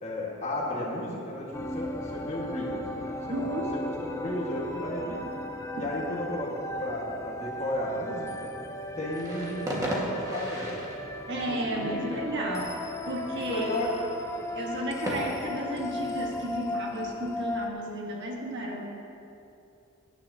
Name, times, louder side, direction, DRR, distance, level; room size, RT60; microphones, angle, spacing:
voice 1, 0.0-5.2 5.7-8.5 9.0-10.8 11.3-12.2 13.5-14.0, left 1 dB, 30° left, -3 dB, 1.6 m, -34 dB
sound 1, 1.5-17.7, left 1 dB, 15° left, 0.5 m, -36 dB
voice 2, 3.3-3.7 11.3-13.8 14.5-18.8, right 1 dB, 55° right, -1 dB, 1.4 m, -33 dB
sound 2, 9.1-16.7, right 1 dB, 15° right, 1.6 m, -38 dB
17.5 x 9.8 x 2.8 m, 2.7 s
head